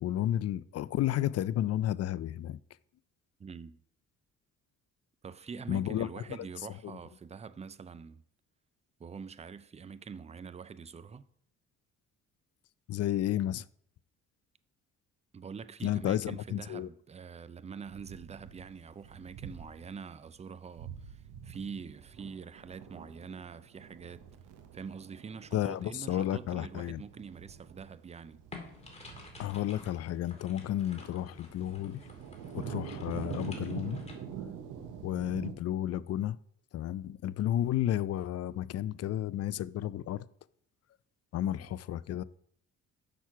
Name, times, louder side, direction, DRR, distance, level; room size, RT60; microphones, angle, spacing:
voice 1, 0.0-2.6 5.7-6.4 6.8-6.9 12.9-13.6 15.8-16.9 25.5-27.0 29.4-32.0 32.5-34.0 35.0-36.4 36.7-40.3 41.3-42.2, left 12 dB, 55° left, 0.4 m, -32 dB
voice 2, 3.4-3.8 5.2-8.2 9.0-11.2 15.3-24.3 24.7-28.4 41.6-41.7, right 6 dB, 20° right, 0.4 m, -45 dB
sound 1, 17.9-19.9 20.3-20.4 20.8-35.5, right 8 dB, 85° right, 1.0 m, -45 dB
sound 2, 28.5-34.1, left 3 dB, 20° left, 2.2 m, -50 dB
6.4 x 6.0 x 5.7 m
cardioid pair, 90°, 30 cm